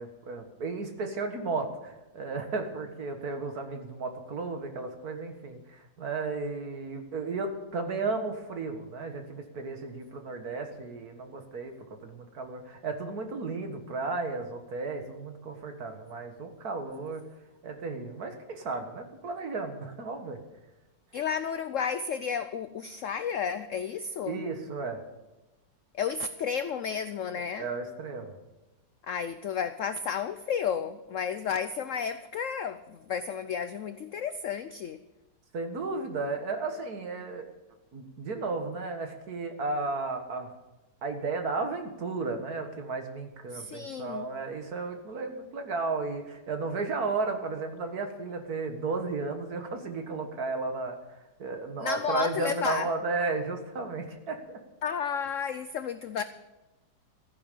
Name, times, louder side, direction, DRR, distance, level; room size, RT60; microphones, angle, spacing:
voice 1, 0.0-17.2 17.6-20.4 24.2-25.0 27.6-28.3 35.5-37.5 37.9-40.5 41.0-51.0 51.4-54.6, right 3 dB, 55° right, 5 dB, 2.0 m, -34 dB
voice 2, 21.1-24.4 25.9-27.7 29.1-35.0 43.5-44.3 51.8-52.9 54.8-56.2, left 7 dB, 85° left, 12 dB, 0.6 m, -32 dB
14.5 x 10.0 x 6.8 m, 1.0 s
omnidirectional pair, 2.0 m